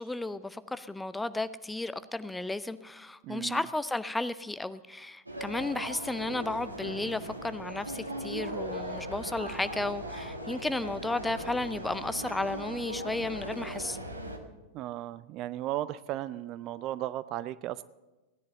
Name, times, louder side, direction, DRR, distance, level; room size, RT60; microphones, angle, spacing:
voice 1, 0.0-14.0, left 2 dB, 5° left, 14 dB, 0.6 m, -33 dB
voice 2, 3.2-3.6 14.7-17.8, right 13 dB, 40° right, 16 dB, 0.4 m, -35 dB
sound 1, 5.3-14.4, right 1 dB, 85° right, 1.6 m, -39 dB
16.5 x 10.5 x 6.7 m, 1.1 s
figure-of-eight pair, 90°, 0 cm